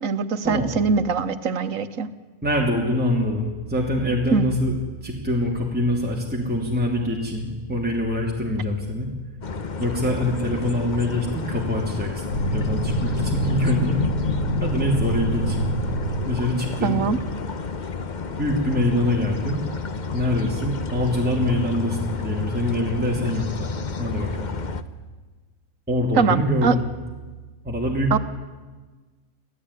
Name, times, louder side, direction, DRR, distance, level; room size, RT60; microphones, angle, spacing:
voice 1, 0.0-2.1 4.3-4.4 16.8-17.2 26.2-26.7 28.1-28.2, right 5 dB, 75° right, 11 dB, 1.5 m, -22 dB
voice 2, 2.4-4.7 5.0-9.1 9.8-14.0 14.6-15.7 16.2-17.0 18.4-19.6 20.1-23.7 24.0-24.5 25.9-26.8 27.6-28.2, left 1 dB, 5° right, -2 dB, 2.9 m, -24 dB
sound 1, 9.4-24.8, left 5 dB, 40° left, 1.0 m, -31 dB
sound 2, 12.3-16.8, equal, 65° left, 2.3 m, -26 dB
26.0 x 15.5 x 9.9 m, 1.3 s
omnidirectional pair, 1.4 m